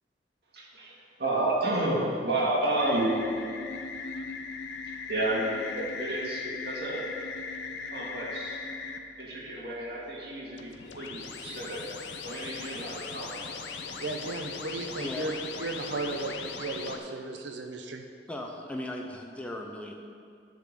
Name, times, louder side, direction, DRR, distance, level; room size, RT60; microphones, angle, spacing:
voice 1, 0.5-3.1 4.8-7.1 7.8-8.6 9.2-11.9 12.2-13.5, right 1 dB, 65° right, -4 dB, 1.9 m, -31 dB
sound 1, 2.8-9.0 10.5-17.0, left 4 dB, 90° left, 0.7 m, -39 dB
voice 2, 14.0-18.1, right 3 dB, 80° right, 4 dB, 0.8 m, -35 dB
voice 3, 15.0-15.4 18.3-19.9, left 1 dB, 5° left, 0 dB, 0.6 m, -37 dB
10.5 x 3.9 x 7.5 m, 2.3 s
head